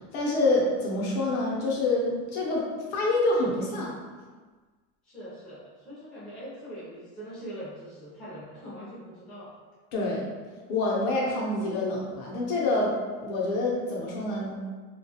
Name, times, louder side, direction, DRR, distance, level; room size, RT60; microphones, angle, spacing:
voice 1, 0.1-4.0 9.9-10.3 10.7-12.9 13.2-14.6, left 2 dB, 65° left, -3 dB, 0.7 m, -27 dB
voice 2, 5.0-9.5, equal, ahead, -11 dB, 0.4 m, -42 dB
2.3 x 2.3 x 2.7 m, 1.4 s
cardioid pair, 180°, 33 cm